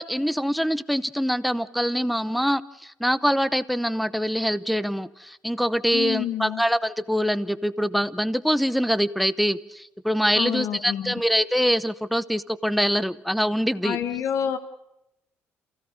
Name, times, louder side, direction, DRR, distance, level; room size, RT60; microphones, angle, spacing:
voice 1, 0.0-14.0, equal, ahead, 16 dB, 0.9 m, -24 dB
voice 2, 5.9-6.6 10.4-11.1 13.8-14.6, left 9 dB, 80° left, 10 dB, 1.6 m, -28 dB
28.0 x 16.5 x 6.6 m, 0.86 s
cardioid pair, 120°, 5 cm